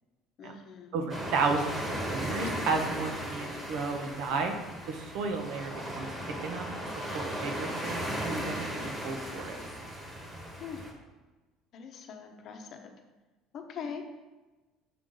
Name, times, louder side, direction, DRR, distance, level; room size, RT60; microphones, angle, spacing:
voice 1, 0.4-0.9 10.6-10.8 11.7-12.9 13.5-14.0, left 7 dB, 45° left, 4 dB, 0.8 m, -42 dB
voice 2, 0.9-4.5 4.9-6.7 7.1-9.6, right 4 dB, 65° right, 4 dB, 1.0 m, -33 dB
sound 1, 1.1-10.9, equal, 20° right, 1.4 m, -36 dB
6.8 x 5.3 x 3.8 m, 1.2 s
cardioid pair, 155°, 0 cm